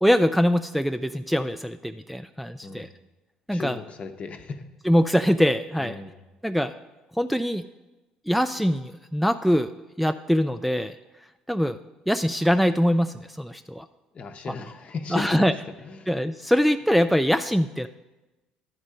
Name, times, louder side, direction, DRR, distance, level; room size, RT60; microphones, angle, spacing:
voice 1, 0.0-2.9 3.5-3.8 4.9-5.9 6.4-6.7 7.2-7.6 8.3-9.7 10.0-10.9 11.5-11.8 12.1-13.8 15.1-15.5 16.1-17.9, equal, ahead, 8 dB, 0.3 m, -23 dB
voice 2, 2.6-2.9 3.5-4.6 5.8-6.2 14.1-16.1, left 5 dB, 45° left, 7 dB, 0.8 m, -36 dB
12.0 x 4.4 x 5.1 m, 1.1 s
hypercardioid pair, 60°, 3 cm